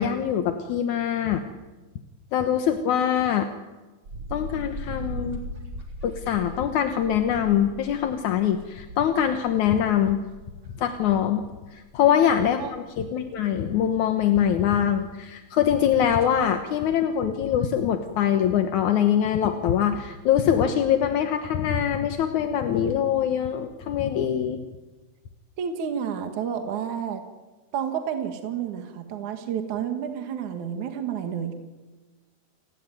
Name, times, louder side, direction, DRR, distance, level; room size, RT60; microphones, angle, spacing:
voice 1, 0.0-1.4 2.3-3.5 4.3-5.4 6.0-10.2 10.8-11.5 11.7-24.6, left 9 dB, 65° left, 7 dB, 2.1 m, -23 dB
sound 1, 4.0-11.2 11.6-12.4 12.7-12.8 13.2-13.3 15.4-15.5 15.8-15.9 16.1-16.6, equal, 30° right, 3.9 m, -39 dB
voice 2, 25.6-27.2 27.7-31.5, right 8 dB, 55° right, 6 dB, 2.9 m, -30 dB
30.0 x 18.5 x 9.3 m, 1.2 s
omnidirectional pair, 4.7 m